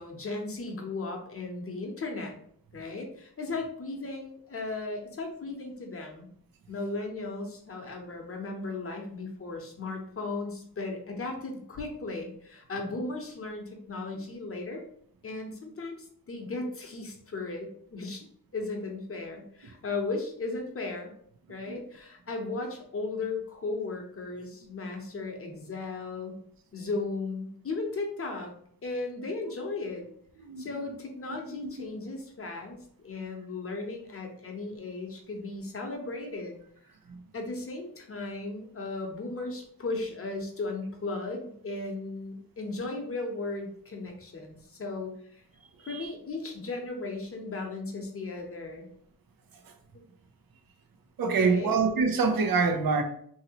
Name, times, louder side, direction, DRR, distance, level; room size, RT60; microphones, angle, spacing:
voice 1, 0.0-2.3 2.7-6.3 6.7-14.8 15.2-18.3 18.5-21.1 21.5-26.3 26.7-28.5 28.8-30.0 30.6-32.8 33.0-36.6 37.3-45.4 45.8-48.9 49.9-50.0 51.4-51.7, left 3 dB, 40° left, 2 dB, 0.8 m, -36 dB
voice 2, 51.2-53.0, right 4 dB, 70° right, 6 dB, 0.6 m, -26 dB
2.8 x 2.8 x 2.8 m, 0.64 s
cardioid pair, 75°, 36 cm